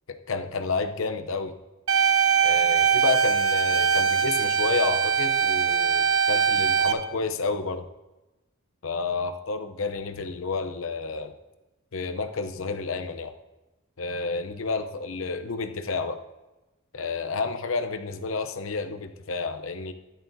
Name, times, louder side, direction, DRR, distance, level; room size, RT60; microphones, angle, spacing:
voice 1, 0.1-1.5 2.4-7.8 8.8-11.3 11.9-13.3 14.0-16.2 16.9-19.9, left 4 dB, 70° left, 7 dB, 0.7 m, -30 dB
sound 1, 1.9-6.9, right 6 dB, 75° right, 0.8 m, -22 dB
13.0 x 10.5 x 2.7 m, 1.0 s
head